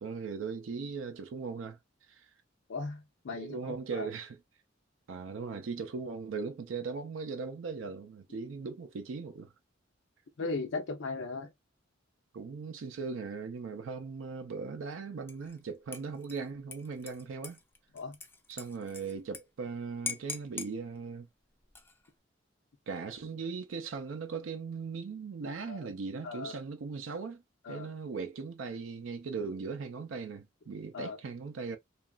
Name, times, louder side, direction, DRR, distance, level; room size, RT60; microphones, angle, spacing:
voice 1, 0.0-1.8 2.1-2.3 3.3-4.4 5.1-9.5 12.3-17.6 18.5-21.3 22.9-27.4 27.7-31.8, right 5 dB, 75° right, 0.4 m, -39 dB
voice 2, 2.7-4.1 10.4-11.5 17.9-18.2 25.7-25.9 26.2-26.6 27.6-27.9 30.9-31.2, left 3 dB, 65° left, 0.5 m, -38 dB
Dishes pots and pans / Liquid, 15.3-15.6 15.9-19.4 19.7-19.8 20.1-20.7 21.6-22.1, left 4 dB, 10° left, 0.4 m, -42 dB
2.9 x 2.4 x 2.3 m
head